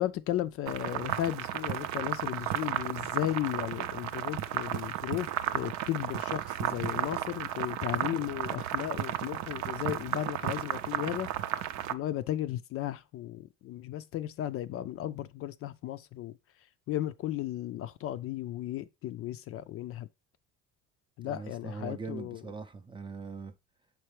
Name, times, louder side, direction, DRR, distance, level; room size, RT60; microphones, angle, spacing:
voice 1, 0.0-5.3 5.5-11.3 11.9-16.4 16.9-20.1 21.2-22.4, left 13 dB, 45° left, 0.4 m, -35 dB
sound 1, 0.7-11.9, right 12 dB, 60° right, 0.6 m, -34 dB
voice 2, 21.2-23.5, right 4 dB, 15° right, 0.4 m, -41 dB
6.6 x 4.5 x 3.2 m
cardioid pair, 125°, 32 cm